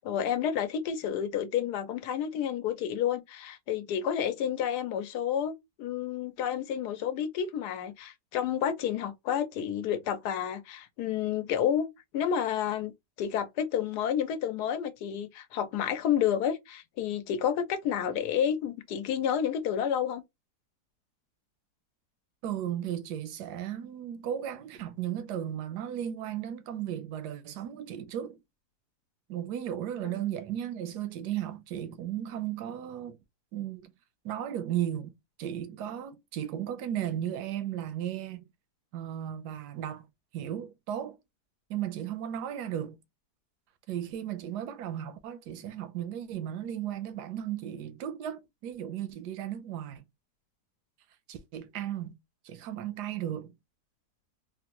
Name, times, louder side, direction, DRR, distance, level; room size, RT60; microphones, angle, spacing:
voice 1, 0.0-11.9 12.1-12.9 13.2-20.2 30.0-30.2, left 9 dB, 80° left, 1.2 m, -30 dB
voice 2, 22.4-28.4 29.3-33.2 33.5-33.9 34.2-35.1 35.4-38.4 38.9-40.1 40.3-41.2 41.7-43.0 43.9-50.0 51.3-52.2 52.4-53.5, right 10 dB, 85° right, 1.2 m, -35 dB
3.5 x 2.1 x 2.9 m
omnidirectional pair, 1.7 m